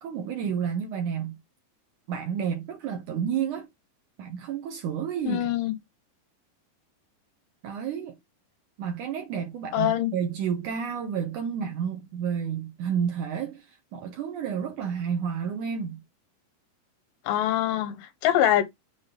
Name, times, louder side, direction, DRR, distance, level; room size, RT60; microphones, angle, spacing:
voice 1, 0.0-1.3 2.1-3.7 4.2-5.5 7.6-8.2 8.8-13.7 13.9-16.0, right 7 dB, 70° right, 2.0 m, -30 dB
voice 2, 5.2-5.7 9.7-10.1 17.3-18.6, left 12 dB, 90° left, 3.2 m, -24 dB
7.1 x 3.7 x 3.8 m
omnidirectional pair, 4.6 m